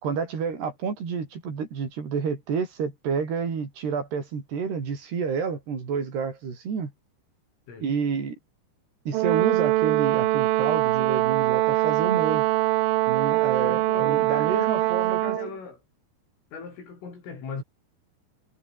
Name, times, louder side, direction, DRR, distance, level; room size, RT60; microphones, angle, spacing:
voice 1, 0.0-6.9 7.8-8.4 9.1-12.5 13.1-15.4, right 6 dB, 55° right, 7.0 m, -29 dB
Brass instrument, 9.1-15.5, right 17 dB, 80° right, 3.5 m, -23 dB
voice 2, 13.6-15.8 16.5-17.6, left 5 dB, 85° left, 10.5 m, -39 dB
omnidirectional pair, 5.6 m